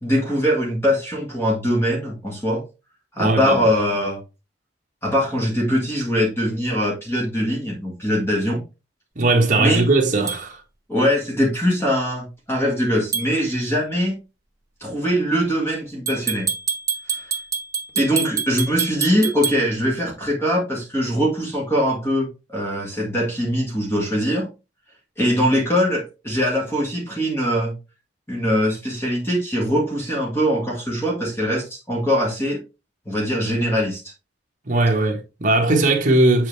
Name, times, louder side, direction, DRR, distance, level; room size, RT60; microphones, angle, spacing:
voice 1, 0.0-2.6 3.1-4.2 5.0-8.6 9.6-9.8 10.9-14.2 14.8-16.5 17.1-17.2 18.0-24.5 25.2-27.7 28.3-32.6 33.1-34.0, equal, 15° left, 1.8 m, -22 dB
voice 2, 3.2-3.7 9.1-10.6 34.6-36.5, right 2 dB, 40° right, 1.4 m, -19 dB
sound 1, 10.3-10.4 13.1-13.3 16.1-19.6, right 6 dB, 20° right, 1.4 m, -26 dB
7.7 x 4.2 x 3.3 m
head